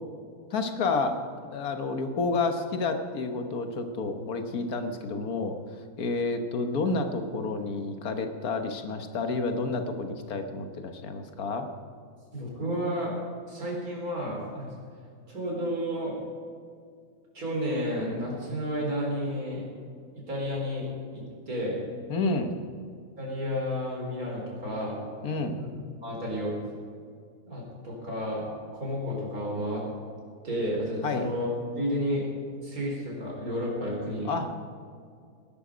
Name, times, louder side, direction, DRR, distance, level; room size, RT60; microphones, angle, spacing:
voice 1, 0.5-5.6 6.0-11.7 22.1-22.6 25.2-25.6 31.0-31.3 34.3-34.5, left 3 dB, 80° left, 6 dB, 1.7 m, -30 dB
voice 2, 12.3-13.2 13.5-14.7 15.3-16.2 17.3-19.6 20.1-21.8 23.2-25.0 25.5-25.7 26.0-26.5 27.5-28.5 28.8-29.8 30.4-31.5 31.8-32.2 32.5-34.3, equal, 75° right, -2 dB, 4.5 m, -31 dB
19.0 x 11.5 x 5.1 m, 2.2 s
omnidirectional pair, 1.6 m